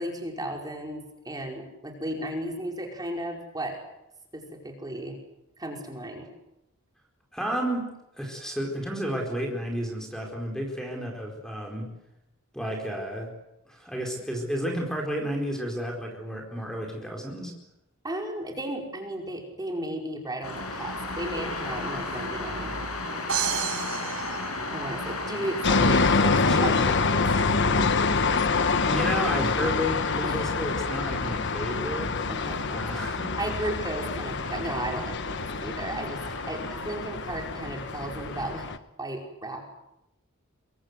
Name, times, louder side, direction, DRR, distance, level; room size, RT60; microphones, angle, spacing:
voice 1, 0.0-3.8 4.3-5.2 5.6-6.3 18.0-22.8 24.7-28.0 30.2-30.5 32.3-32.7 33.4-38.7 39.0-39.7, right 1 dB, 20° right, 1 dB, 5.2 m, -35 dB
voice 2, 7.3-11.9 12.5-13.3 13.7-17.5 26.2-26.9 28.9-32.2 32.7-33.3, equal, 5° left, 1 dB, 4.5 m, -32 dB
sound 1, 20.4-38.5, left 2 dB, 90° left, 6.8 m, -36 dB
sound 2, 23.3-25.3, right 8 dB, 75° right, 5.6 m, -31 dB
sound 3, 25.6-38.8, left 4 dB, 55° left, 1.3 m, -26 dB
26.5 x 24.0 x 8.1 m, 0.88 s
head